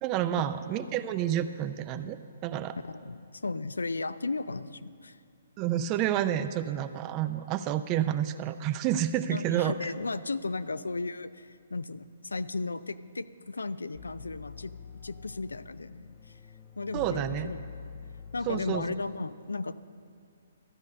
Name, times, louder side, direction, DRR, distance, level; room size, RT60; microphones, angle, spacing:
voice 1, 0.0-2.2 2.4-2.8 5.6-9.7 16.9-17.5 18.5-18.8, right 11 dB, 30° right, 12 dB, 0.4 m, -29 dB
voice 2, 2.9-5.2 9.3-14.7 15.0-16.1 16.8-17.7 18.3-19.7, left 3 dB, 90° left, 15 dB, 0.3 m, -35 dB
sound 1, 13.9-19.2, left 7 dB, 30° left, 0.5 m, -46 dB
13.0 x 5.2 x 8.6 m, 2.3 s
hypercardioid pair, 135°, 0 cm